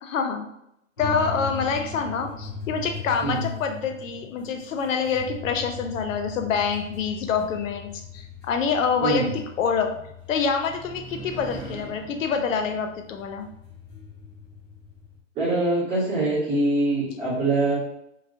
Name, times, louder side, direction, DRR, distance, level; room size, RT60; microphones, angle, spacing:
voice 1, 0.0-0.5 1.0-13.5, left 6 dB, 80° left, 5 dB, 0.6 m, -26 dB
sound 1, 1.0-15.2, left 4 dB, 20° left, 0.8 m, -39 dB
voice 2, 9.0-9.3 15.3-17.7, right 2 dB, 15° right, -12 dB, 1.2 m, -23 dB
2.9 x 2.7 x 2.5 m, 0.79 s
hypercardioid pair, 170°, 38 cm